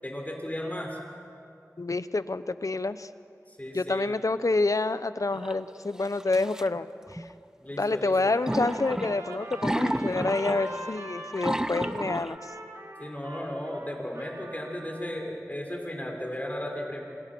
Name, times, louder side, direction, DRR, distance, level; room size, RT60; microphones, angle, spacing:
voice 1, 0.0-1.0 3.5-4.1 7.6-8.3 13.0-17.0, left 1 dB, 25° left, 1 dB, 6.0 m, -35 dB
voice 2, 1.8-3.1 3.7-7.2 7.8-12.5, left 3 dB, 70° left, 13 dB, 0.9 m, -28 dB
sound 1, 5.3-5.5 6.2-6.7 7.1-7.3 8.5-10.9 11.3-12.3, right 1 dB, 10° right, 0.8 m, -31 dB
Trumpet, 8.1-15.2, right 1 dB, 65° right, 3.7 m, -42 dB
29.0 x 27.5 x 6.2 m, 2.5 s
wide cardioid pair, 45°, 6 cm